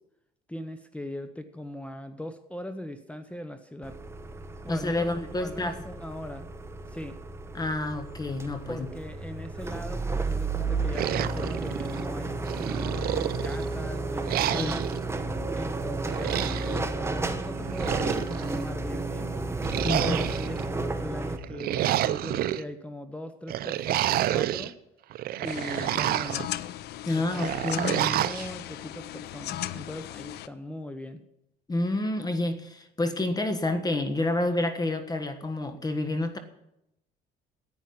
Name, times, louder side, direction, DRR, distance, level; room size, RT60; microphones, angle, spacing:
voice 1, 0.5-4.0 4.6-5.1 5.3-6.5 6.9-7.2 8.7-14.9 15.5-19.3 20.0-24.7 25.4-26.5 27.1-31.2, left 1 dB, 5° left, 9 dB, 0.9 m, -40 dB
sound 1, 3.8-21.4, right 3 dB, 15° right, 1.1 m, -32 dB
voice 2, 4.7-5.8 7.5-8.9 14.5-14.8 19.8-20.2 27.1-28.0 31.7-36.4, left 2 dB, 20° left, 9 dB, 1.4 m, -29 dB
sound 2, 10.9-12.1 12.5-13.7 14.3-15.0 16.0-16.8 17.6-18.6 19.6-20.6 21.4-22.6 23.5-24.7 25.1-26.5 27.3-28.5, right 13 dB, 65° right, 0.6 m, -29 dB
sound 3, 25.4-30.5, left 13 dB, 75° left, 0.6 m, -37 dB
10.5 x 9.2 x 9.5 m, 0.83 s
cardioid pair, 110°, 17 cm